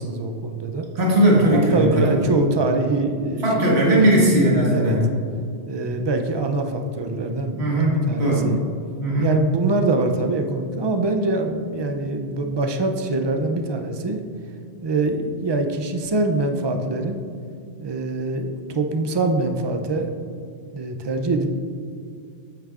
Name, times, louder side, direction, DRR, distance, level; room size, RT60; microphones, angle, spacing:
voice 1, 0.0-0.9 1.5-4.2 4.7-5.0 5.7-8.6 9.2-14.2 14.8-17.2 17.8-20.1 20.7-21.5, right 2 dB, 45° right, 5 dB, 0.3 m, -24 dB
voice 2, 1.0-2.3 3.4-5.0 7.6-8.5 9.0-9.3, right 1 dB, 65° right, -4 dB, 1.8 m, -18 dB
9.0 x 8.8 x 2.5 m, 2.4 s
omnidirectional pair, 1.2 m